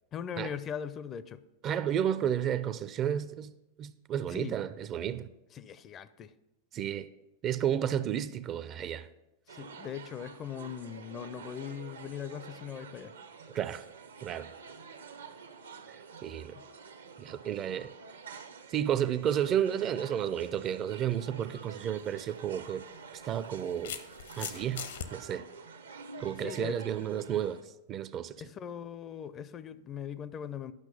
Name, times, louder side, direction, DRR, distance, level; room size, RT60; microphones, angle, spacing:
voice 1, 0.1-1.4 4.3-4.6 5.5-6.3 9.5-13.1 26.4-26.8 28.4-30.7, left 8 dB, 30° left, 0.4 m, -40 dB
voice 2, 1.6-3.5 3.8-5.3 6.7-7.1 7.4-9.1 13.5-13.8 14.2-14.5 16.2-16.5 17.2-17.9 18.7-22.8 23.2-23.9 24.4-25.5 26.2-27.6 27.9-28.4, right 9 dB, 30° right, 0.4 m, -32 dB
sound 1, 9.5-27.6, right 5 dB, 70° right, 0.7 m, -49 dB
sound 2, 21.9-22.1 23.1-25.1, left 8 dB, 65° left, 0.7 m, -40 dB
10.5 x 5.9 x 5.4 m
figure-of-eight pair, 90°, 0 cm